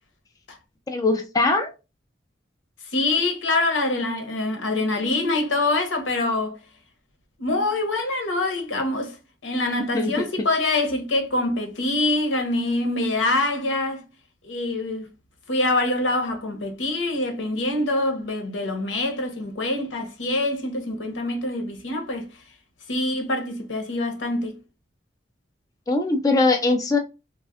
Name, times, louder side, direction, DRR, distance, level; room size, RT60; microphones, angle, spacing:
voice 1, 0.9-1.7 9.9-10.1 25.9-27.0, left 3 dB, 20° left, 0.3 m, -21 dB
voice 2, 2.9-6.5 7.4-9.2 9.4-14.0 14.4-15.1 15.5-22.3 22.9-24.6, left 2 dB, 85° left, 0.8 m, -25 dB
3.3 x 2.1 x 2.3 m
head